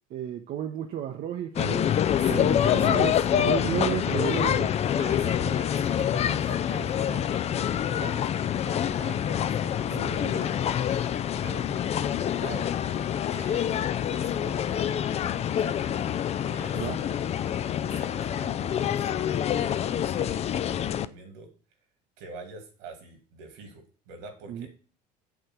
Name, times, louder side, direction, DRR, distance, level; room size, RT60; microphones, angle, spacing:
voice 1, 0.1-1.9 2.2-4.7 9.9-10.5 16.7-17.0 24.5-24.7, right 10 dB, 50° right, 3 dB, 0.8 m, -33 dB
sound 1, 1.6-21.1, left 9 dB, 30° left, 0.4 m, -26 dB
voice 2, 2.2-3.2 5.0-12.7 13.3-15.3 15.6-16.1 16.4-17.3 17.9-21.5 22.2-24.7, right 3 dB, 65° right, 5 dB, 2.0 m, -45 dB
8.2 x 3.4 x 6.1 m, 0.37 s
hypercardioid pair, 70°, 21 cm